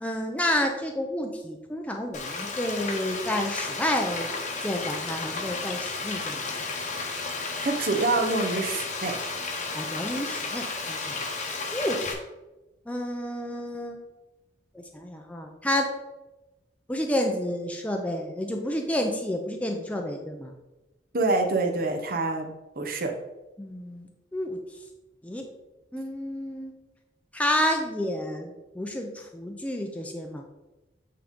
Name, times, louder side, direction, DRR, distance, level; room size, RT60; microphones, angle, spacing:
voice 1, 0.0-4.3 4.6-6.4 9.7-11.2 11.7-12.1 12.9-14.0 14.7-15.9 16.9-20.5 23.6-24.6 25.2-25.5 25.9-26.7 27.3-30.5, left 1 dB, 10° left, 2 dB, 0.6 m, -30 dB
Frying (food), 2.1-12.1, left 3 dB, 45° left, 0.9 m, -33 dB
voice 2, 7.6-9.1 21.1-22.5 22.8-23.1, right 3 dB, 55° right, 3 dB, 0.9 m, -26 dB
8.6 x 3.8 x 3.7 m, 1.0 s
head